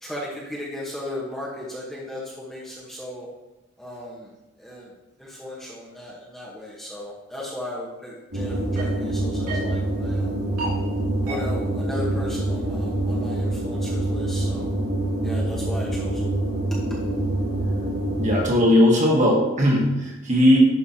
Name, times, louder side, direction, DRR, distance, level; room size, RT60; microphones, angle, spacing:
voice 1, 0.0-3.3 3.8-4.3 4.6-4.9 5.2-10.3 11.2-14.7 15.2-16.3 16.9-17.0, left 1 dB, ahead, -6 dB, 1.1 m, -36 dB
sound 1, 8.3-18.5, right 1 dB, 85° right, 2.6 m, -25 dB
voice 2, 18.2-20.6, left 1 dB, 35° right, -2 dB, 1.5 m, -18 dB
11.0 x 5.2 x 2.8 m, 1.0 s
head